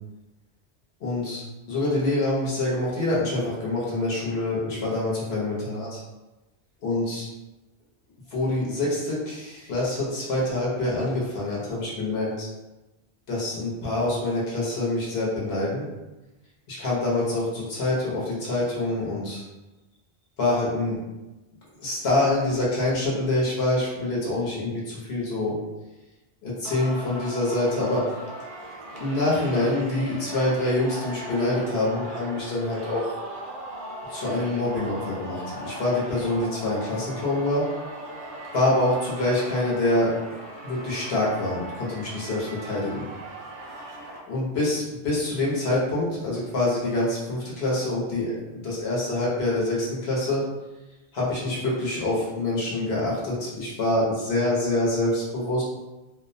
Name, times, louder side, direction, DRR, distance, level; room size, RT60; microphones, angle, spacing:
voice 1, 1.0-6.0 6.8-7.3 8.3-12.5 13.3-15.9 16.7-19.4 20.4-21.0 21.8-25.6 26.4-28.1 29.0-33.1 34.1-37.7 38.5-40.1 40.6-43.1 44.3-50.4 51.1-55.6, left 2 dB, 65° left, -6 dB, 1.0 m, -26 dB
Singing, 26.7-44.2, right 1 dB, 60° right, 0.6 m, -38 dB
2.4 x 2.0 x 2.5 m, 1.1 s
omnidirectional pair, 1.2 m